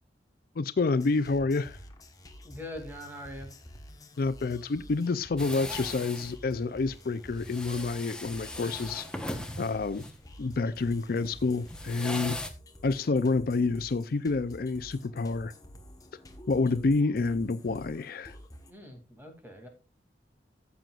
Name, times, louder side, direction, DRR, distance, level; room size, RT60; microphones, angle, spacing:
voice 1, 0.6-1.8 4.2-9.1 9.6-10.0 10.4-12.4 12.8-15.5 16.5-18.4, left 3 dB, 55° left, 0.4 m, -28 dB
sound 1, 0.9-18.7, equal, 20° left, 1.1 m, -50 dB
voice 2, 2.4-3.5 18.7-19.7, left 1 dB, 10° right, 2.5 m, -43 dB
sound 2, 5.4-12.5, left 1 dB, 5° left, 1.0 m, -39 dB
14.0 x 7.6 x 2.4 m
head